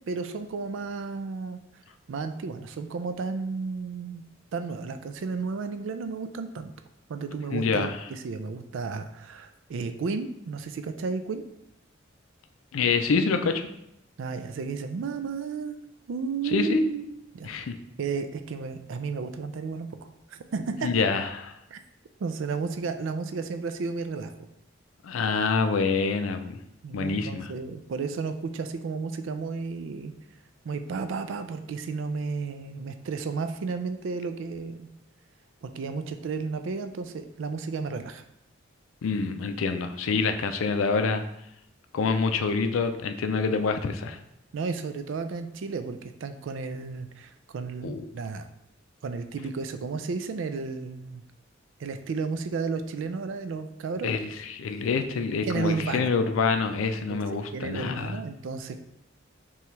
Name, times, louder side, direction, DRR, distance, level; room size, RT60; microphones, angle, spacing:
voice 1, 0.1-1.6 2.1-4.2 4.5-6.7 7.1-11.4 14.2-15.8 16.1-17.1 17.3-17.5 18.0-20.0 20.3-20.9 21.7-21.8 22.2-24.3 26.8-30.1 30.6-34.9 35.6-38.2 44.5-48.5 49.0-51.2 51.8-54.1 55.4-56.1 57.1-58.8, right 4 dB, 70° right, 9 dB, 0.3 m, -33 dB
voice 2, 7.5-8.0 12.7-13.7 16.4-16.8 17.4-17.8 20.8-21.4 25.0-26.6 26.9-27.5 39.0-41.2 41.9-44.2 47.8-48.1 54.0-58.2, left 4 dB, 85° left, 8 dB, 0.4 m, -26 dB
5.7 x 2.3 x 3.1 m, 0.80 s
head